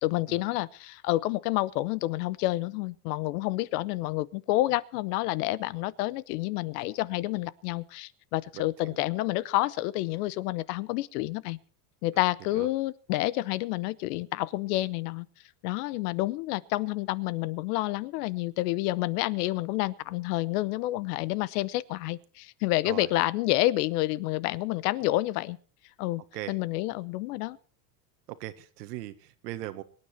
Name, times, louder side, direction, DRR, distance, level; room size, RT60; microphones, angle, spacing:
voice 1, 0.0-11.6 12.0-15.3 15.6-25.6 26.0-26.2 26.5-27.6, left 17 dB, 70° left, 0.9 m, -29 dB
voice 2, 8.5-8.9 12.5-12.7 22.8-23.1 26.3-26.5 28.3-29.8, right 15 dB, 85° right, 1.7 m, -39 dB
24.0 x 9.7 x 4.4 m
supercardioid pair, 140°, 48 cm